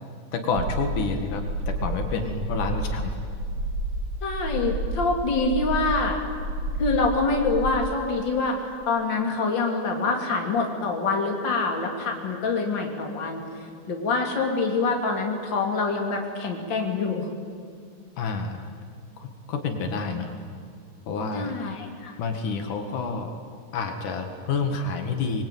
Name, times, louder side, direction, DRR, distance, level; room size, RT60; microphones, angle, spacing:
voice 1, 0.3-3.1 18.2-18.6 19.2-20.3 21.1-21.5 22.2-23.3 23.7-25.4, left 4 dB, 75° left, 5 dB, 3.3 m, -29 dB
sound 1, 0.6-7.7, right 1 dB, 55° right, 3.3 m, -30 dB
voice 2, 4.2-6.2 6.8-8.6 8.9-13.4 13.9-17.3 21.3-22.1, left 3 dB, 35° left, 2 dB, 3.2 m, -25 dB
25.5 x 22.0 x 9.2 m, 2.2 s
omnidirectional pair, 3.6 m